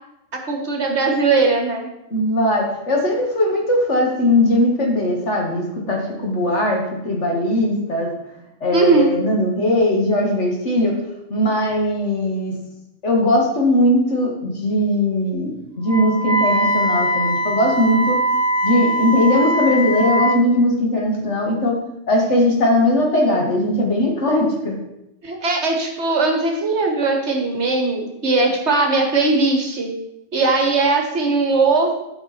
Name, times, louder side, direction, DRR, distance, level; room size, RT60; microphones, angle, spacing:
voice 1, 0.5-1.9 8.7-9.1 25.2-29.9 30.3-31.9, right 3 dB, 60° right, 2 dB, 1.7 m, -19 dB
voice 2, 2.1-8.1 8.6-11.0 11.3-12.6 13.0-18.2 18.6-21.8 22.1-24.7, left 1 dB, 60° left, 0 dB, 2.2 m, -19 dB
Wind instrument woodwind instrument, 15.9-20.4, right 1 dB, 75° right, 1.4 m, -21 dB
12.5 x 5.7 x 4.4 m, 0.87 s
omnidirectional pair, 1.3 m